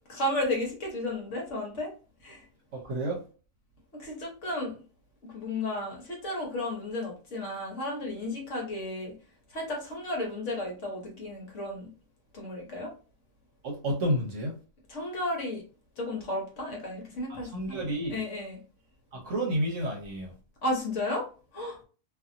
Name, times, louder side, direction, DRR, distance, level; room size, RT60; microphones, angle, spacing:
voice 1, 0.1-1.9 2.2-2.4 3.9-4.8 5.3-9.1 9.5-11.9 12.3-12.9 14.9-15.6 16.0-17.8 18.1-18.6 20.6-21.3 21.5-21.8, left 1 dB, 55° left, 1.1 m, -33 dB
voice 2, 2.7-3.2 13.6-14.5 17.3-18.2 19.1-20.3, right 1 dB, 55° right, 1.1 m, -30 dB
2.7 x 2.7 x 2.5 m
omnidirectional pair, 1.6 m